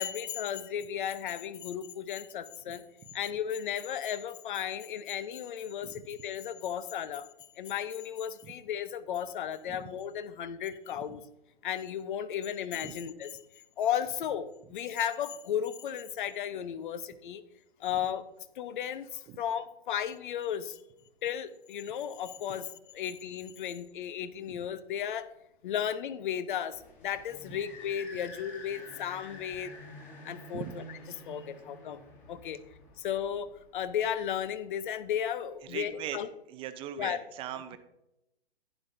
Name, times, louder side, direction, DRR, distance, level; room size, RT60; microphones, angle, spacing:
voice 1, 0.0-2.8 3.1-7.3 7.6-11.2 11.6-13.3 13.8-17.4 17.8-20.8 21.2-22.7 22.9-25.3 25.6-29.7 30.2-32.6 33.0-36.3 37.0-37.2, left 9 dB, 50° left, 13 dB, 0.9 m, -34 dB
sound 1, 26.7-34.0, left 1 dB, 25° left, 2.7 m, -49 dB
voice 2, 35.7-36.2 36.5-37.8, right 11 dB, 15° right, 10 dB, 0.6 m, -40 dB
11.5 x 10.0 x 2.7 m, 0.87 s
hypercardioid pair, 125°, 32 cm